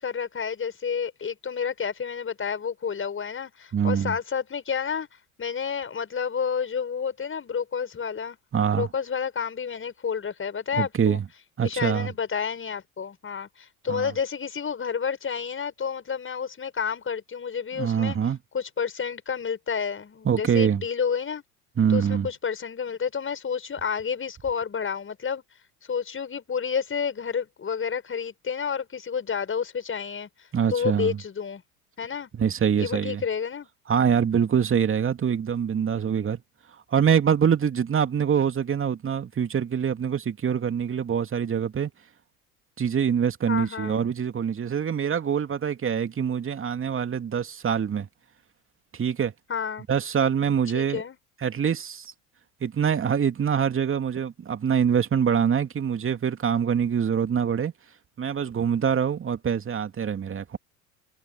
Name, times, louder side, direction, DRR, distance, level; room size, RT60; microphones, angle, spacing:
voice 1, 0.0-5.1 5.4-8.4 8.7-11.2 11.6-18.2 18.5-21.4 21.9-25.4 25.9-31.6 32.0-32.3 32.8-33.7 43.5-44.0 49.5-49.9 50.7-51.2, left 6 dB, 25° left, 6.5 m, -30 dB
voice 2, 3.7-4.1 8.5-8.9 10.8-11.2 11.6-12.1 13.9-14.1 17.8-18.4 20.2-20.8 21.8-22.3 30.5-31.2 32.4-33.2 33.9-36.4 36.9-41.9 42.8-48.1 49.0-49.3 49.9-51.0 51.4-52.1 52.6-57.7 58.2-60.6, right 7 dB, 25° right, 2.7 m, -24 dB
figure-of-eight pair, 75°, 45 cm